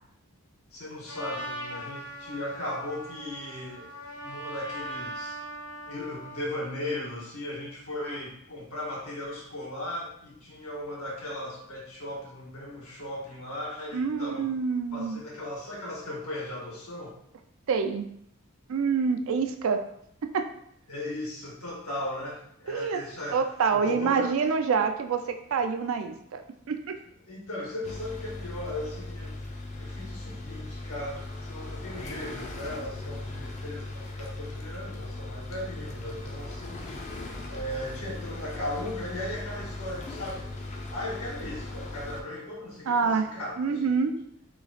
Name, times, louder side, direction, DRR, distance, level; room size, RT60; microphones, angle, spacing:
voice 1, 0.7-5.4 5.8-14.4 14.9-17.2 20.9-23.4 23.7-24.3 27.3-37.1 37.5-44.1, left 1 dB, 90° left, -5 dB, 1.4 m, -37 dB
Trumpet, 1.1-6.5, right 1 dB, 65° left, 1.5 m, -40 dB
voice 2, 13.9-15.2 17.7-18.1 18.7-19.8 20.2-20.5 22.7-23.0 23.3-26.4 26.7-27.0 42.9-43.3 43.6-44.2, right 5 dB, 70° right, 7 dB, 0.4 m, -26 dB
sound 1, 27.8-42.2, left 2 dB, 30° left, 0.4 m, -38 dB
3.0 x 2.4 x 4.0 m, 0.73 s
head